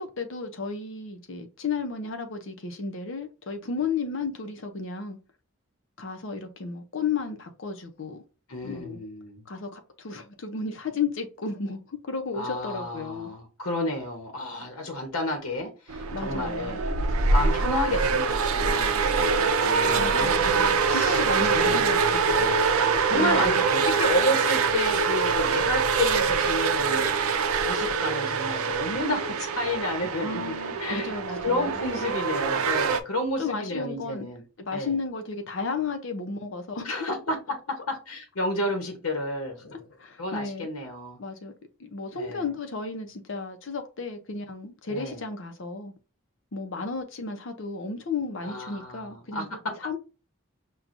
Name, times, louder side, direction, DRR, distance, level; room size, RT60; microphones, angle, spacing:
voice 1, 0.0-5.2 6.0-8.2 8.6-9.0 9.5-13.3 16.1-16.8 19.9-22.5 23.1-23.6 30.2-31.8 33.4-34.3 34.6-37.1 40.0-40.7 41.2-41.5 41.8-45.9 46.5-49.5 49.8-50.0, left 4 dB, 60° left, 0.6 m, -33 dB
voice 2, 8.5-9.4 12.4-16.9 17.3-21.2 21.5-34.4 34.7-35.0 36.8-37.6 37.9-39.8 40.2-41.2 42.1-42.4 44.9-45.2 48.4-49.4, left 1 dB, 85° left, 1.0 m, -31 dB
sound 1, 15.9-33.0, right 5 dB, 85° right, 0.5 m, -24 dB
6.0 x 2.3 x 2.5 m
head